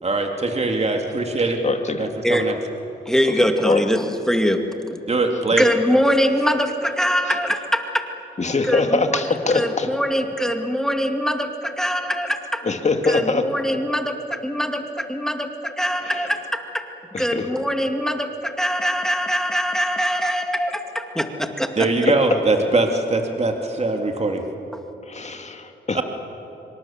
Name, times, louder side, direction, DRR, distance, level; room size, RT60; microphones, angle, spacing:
voice 1, 0.0-1.6 2.0-2.5 5.1-5.7 21.8-24.4 25.9-26.0, right 3 dB, 35° right, 3 dB, 2.7 m, -22 dB
voice 2, 1.6-2.1 3.3-3.4 3.7-3.8 8.4-9.9 12.6-13.4 16.1-16.2 17.1-17.4 22.0-22.1 25.0-26.0, left 3 dB, 35° left, 6 dB, 2.5 m, -22 dB
voice 3, 3.1-4.6 4.9-5.0 5.6-8.1 8.7-9.2 9.5-12.6 13.0-16.8 17.2-21.7, equal, ahead, 5 dB, 2.2 m, -23 dB
26.0 x 25.0 x 7.4 m, 3.0 s
cardioid pair, 70°, 20 cm